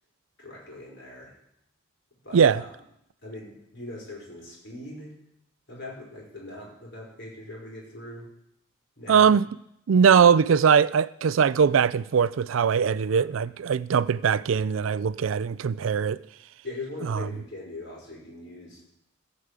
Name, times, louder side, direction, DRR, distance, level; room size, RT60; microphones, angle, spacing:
voice 1, 0.4-1.4 2.2-2.7 3.2-5.2 5.7-8.3 9.0-9.4 13.1-13.3 16.6-18.8, left 2 dB, 60° left, 4.8 m, -41 dB
voice 2, 9.1-9.4 9.9-16.2, right 7 dB, 90° right, 0.4 m, -21 dB
14.5 x 5.1 x 8.2 m
head